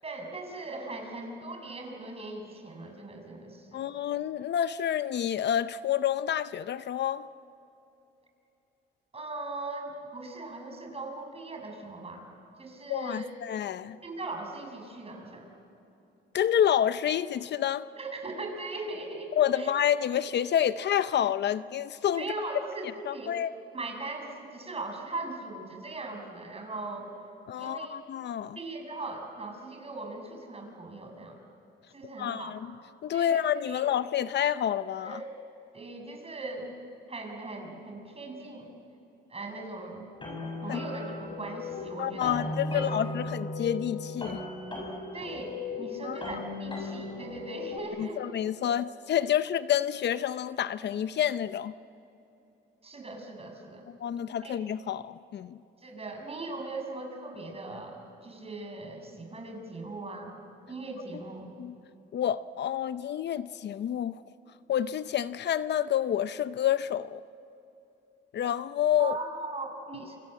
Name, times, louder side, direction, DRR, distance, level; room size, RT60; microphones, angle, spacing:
voice 1, 0.0-3.9 9.1-12.3 12.6-13.3 14.0-15.5 18.0-19.7 21.1-21.2 22.2-23.4 23.7-27.1 27.6-28.0 28.5-31.4 31.9-32.5 33.1-33.4 33.7-33.8 35.0-35.3 35.7-36.7 37.1-38.7 39.3-40.1 40.6-42.4 42.7-43.3 45.1-48.3 52.8-53.8 54.4-54.6 55.8-60.3 60.7-61.5 69.0-70.2, right 2 dB, 30° right, 2 dB, 6.6 m, -39 dB
voice 2, 3.7-7.3 12.9-14.0 16.3-17.9 19.4-22.2 23.1-23.5 27.5-28.6 32.2-32.6 33.0-35.2 40.7-40.8 42.0-44.4 46.0-46.4 48.0-51.7 54.0-55.6 61.6-61.7 62.1-64.2 64.7-67.2 68.3-69.2, left 10 dB, 60° left, 14 dB, 0.7 m, -28 dB
sound 1, 40.1-47.8, left 2 dB, 25° left, 7.0 m, -36 dB
28.5 x 25.5 x 7.7 m, 2.9 s
cardioid pair, 90°, 20 cm